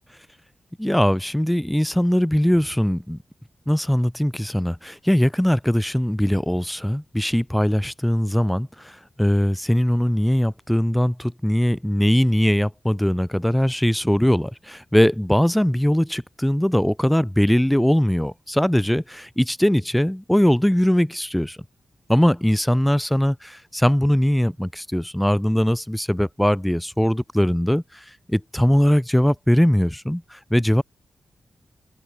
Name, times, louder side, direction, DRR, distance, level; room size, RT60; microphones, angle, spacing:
voice 1, 0.8-3.2 3.7-21.6 22.1-30.8, equal, 5° left, 0.8 m, -20 dB
open air
wide cardioid pair, 155°, 0 cm